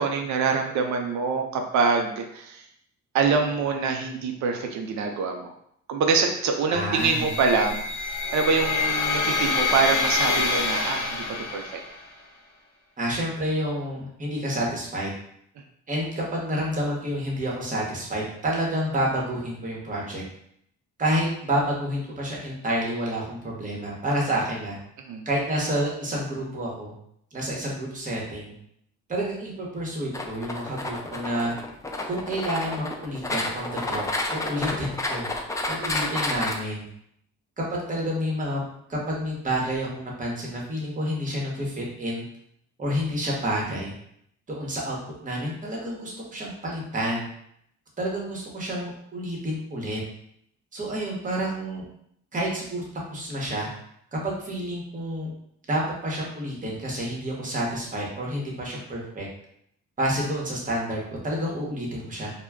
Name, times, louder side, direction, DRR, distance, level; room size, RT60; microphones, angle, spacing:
voice 1, 0.0-2.7 3.1-5.5 5.9-11.2 11.5-11.8 25.0-25.2, right 5 dB, 70° right, 3 dB, 0.5 m, -25 dB
voice 2, 6.7-7.3 13.0-15.1 15.9-20.2 21.0-24.8 25.2-26.9 27.3-28.5 29.1-31.5 32.1-34.0 34.3-35.3 35.7-36.9 37.6-38.6 38.9-42.2 42.8-43.9 44.5-45.0 45.2-47.3 48.0-50.0 50.7-51.8 52.3-52.8 53.1-53.7 54.1-55.3 55.7-59.3 60.0-62.3, equal, 25° right, -3 dB, 1.0 m, -29 dB
sound 1, 7.0-12.0, left 4 dB, 55° left, 0.7 m, -26 dB
sound 2, 30.1-36.5, left 2 dB, 10° left, 0.3 m, -30 dB
2.2 x 2.1 x 3.4 m, 0.71 s
cardioid pair, 90°, 30 cm